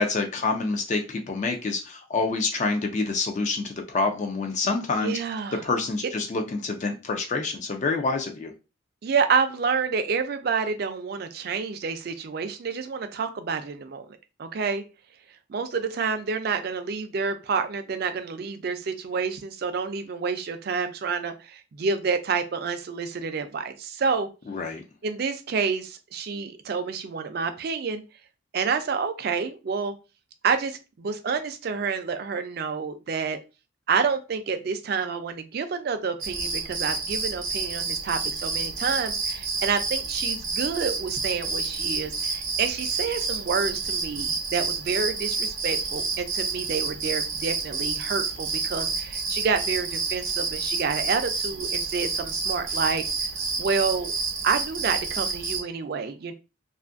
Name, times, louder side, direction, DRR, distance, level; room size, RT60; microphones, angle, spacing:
voice 1, 0.0-5.2 5.6-8.5 24.5-24.8, left 3 dB, 35° left, 4 dB, 0.3 m, -27 dB
voice 2, 5.0-5.6 9.0-14.1 14.4-14.8 15.5-24.3 25.0-28.0 28.5-30.0 30.4-33.4 33.9-53.0 53.6-54.2 54.4-56.3, right 5 dB, 50° right, 9 dB, 0.3 m, -28 dB
sound 1, 36.2-55.6, right 4 dB, 80° right, 0.7 m, -29 dB
2.5 x 2.4 x 2.4 m, 0.30 s
head